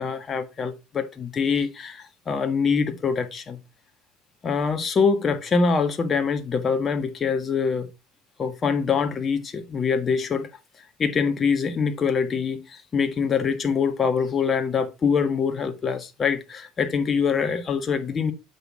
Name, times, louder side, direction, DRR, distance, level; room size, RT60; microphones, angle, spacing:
voice 1, 0.0-3.6 4.4-7.9 8.4-10.5 11.0-18.3, left 5 dB, 35° left, 1.5 m, -24 dB
7.8 x 6.1 x 3.7 m
hypercardioid pair, 70°, 0 cm